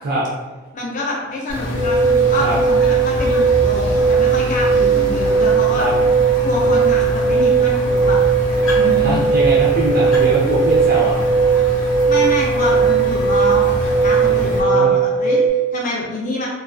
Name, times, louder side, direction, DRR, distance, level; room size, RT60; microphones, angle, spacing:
voice 1, 0.7-5.9 6.4-8.2 8.5-9.2 12.1-16.5, left 2 dB, 35° left, -4 dB, 0.4 m, -26 dB
sound 1, 1.5-14.6, right 1 dB, 70° left, 0.7 m, -25 dB
sound 2, 1.7-15.5, right 5 dB, 90° right, 0.7 m, -17 dB
voice 2, 9.0-11.2 13.9-14.9, right 2 dB, 40° right, -5 dB, 0.3 m, -22 dB
2.3 x 2.2 x 2.4 m, 1.2 s
head